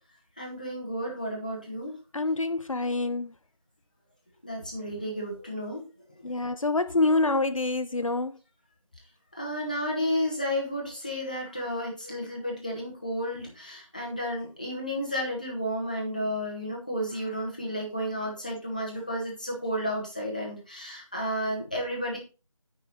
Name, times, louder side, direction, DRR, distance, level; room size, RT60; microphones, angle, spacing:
voice 1, 0.4-1.9 4.4-5.8 9.3-22.2, equal, 15° left, 1.3 m, -32 dB
voice 2, 2.1-3.3 6.2-8.4, left 2 dB, 75° left, 0.7 m, -26 dB
9.2 x 5.6 x 4.1 m
figure-of-eight pair, 180°, 17 cm